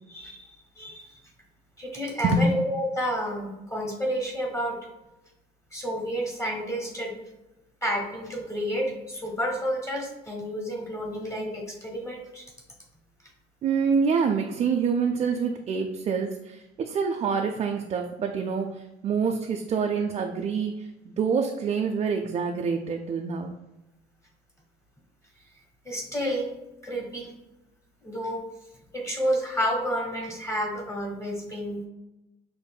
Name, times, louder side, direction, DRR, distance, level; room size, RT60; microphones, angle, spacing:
voice 1, 0.1-1.3 1.8-4.8 5.7-7.2 7.8-12.5 25.8-26.5 26.8-27.3 28.0-28.4 28.9-31.8, equal, 15° left, 0 dB, 1.2 m, -30 dB
voice 2, 13.6-23.6, right 5 dB, 40° right, 3 dB, 0.4 m, -26 dB
6.3 x 2.5 x 2.2 m, 1.0 s
cardioid pair, 110°, 17 cm